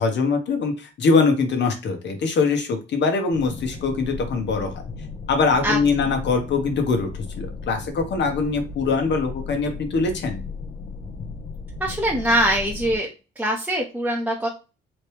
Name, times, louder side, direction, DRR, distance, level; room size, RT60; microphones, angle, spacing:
voice 1, 0.0-4.7 5.3-7.1 7.4-10.4, left 4 dB, 65° left, 4 dB, 1.3 m, -22 dB
sound 1, 3.3-13.0, left 4 dB, 40° left, 1.0 m, -35 dB
voice 2, 11.8-13.1 13.4-14.5, right 1 dB, 5° right, -2 dB, 1.0 m, -23 dB
4.2 x 3.1 x 3.4 m, 0.30 s
cardioid pair, 90°, 20 cm